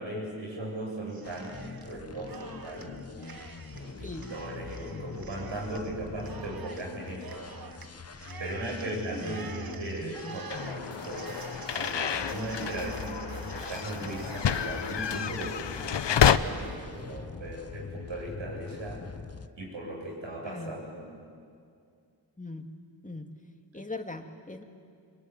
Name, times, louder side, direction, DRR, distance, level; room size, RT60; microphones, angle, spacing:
voice 1, 0.0-3.0 3.7-7.5 8.4-11.4 11.7-19.0 19.5-21.1, right 1 dB, 85° right, -2 dB, 7.9 m, -38 dB
Cheering, 1.1-1.9 2.2-16.7, right 5 dB, 50° right, 1.6 m, -48 dB
sound 1, 1.2-19.5, left 5 dB, 35° left, 1.1 m, -43 dB
sound 2, 10.5-16.4, left 8 dB, 70° left, 1.0 m, -29 dB
voice 2, 20.4-20.8 22.4-22.7 23.0-23.3 23.7-24.6, left 2 dB, 15° left, 5 dB, 2.6 m, -40 dB
24.5 x 22.0 x 9.8 m, 2.3 s
cardioid pair, 50°, 44 cm